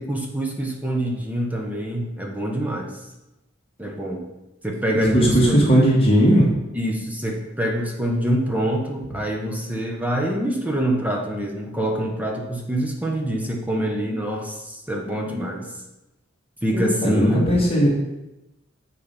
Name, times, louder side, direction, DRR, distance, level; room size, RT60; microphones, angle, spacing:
voice 1, 0.0-3.0 3.8-4.2 4.6-5.6 6.7-15.7 16.6-17.5, right 1 dB, 10° right, 1 dB, 0.8 m, -25 dB
voice 2, 4.9-6.5 16.7-17.9, equal, 30° left, -4 dB, 1.4 m, -17 dB
7.9 x 4.2 x 5.1 m, 0.96 s
head